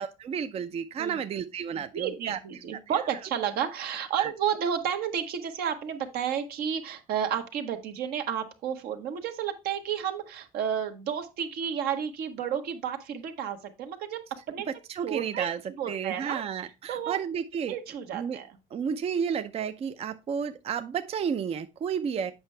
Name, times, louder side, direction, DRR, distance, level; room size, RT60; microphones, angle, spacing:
voice 1, 0.0-2.4 2.7-3.0 4.2-4.3 14.9-15.6 15.9-17.8 18.1-18.4 18.7-22.3, right 7 dB, 40° right, 0.5 m, -32 dB
voice 2, 1.9-14.7 15.0-15.5 15.8-16.4 16.9-17.2 17.7-18.5, right 8 dB, 75° right, 1.2 m, -31 dB
7.8 x 5.5 x 3.2 m
cardioid pair, 110°, 16 cm